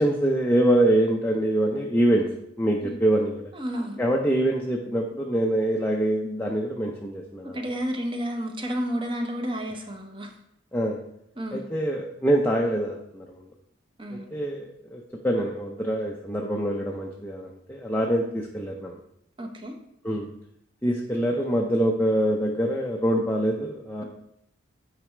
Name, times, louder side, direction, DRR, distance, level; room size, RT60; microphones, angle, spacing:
voice 1, 0.0-2.3 2.6-3.4 4.0-7.6 10.7-11.0 11.5-13.3 14.1-19.0 20.0-20.3 20.8-24.0, right 1 dB, 10° left, -1 dB, 0.5 m, -25 dB
voice 2, 3.5-4.0 7.5-10.3 11.4-11.7 14.0-14.3 19.4-19.7, equal, 25° right, 3 dB, 0.8 m, -31 dB
9.1 x 4.7 x 3.2 m, 0.75 s
head